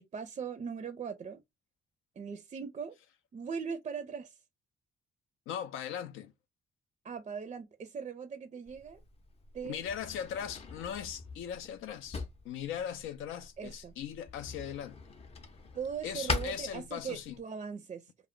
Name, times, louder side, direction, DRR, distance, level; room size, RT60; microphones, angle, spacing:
voice 1, 0.0-1.4 2.2-3.0 3.3-4.4 7.0-9.0 9.5-9.8 13.6-14.0 15.7-18.1, right 6 dB, 35° right, 0.4 m, -40 dB
voice 2, 5.5-6.3 9.6-15.0 16.0-17.3, left 9 dB, 85° left, 0.5 m, -39 dB
Drawer open or close, 8.7-17.4, left 3 dB, 30° left, 0.5 m, -42 dB
2.2 x 2.0 x 3.5 m
cardioid pair, 90°, 20 cm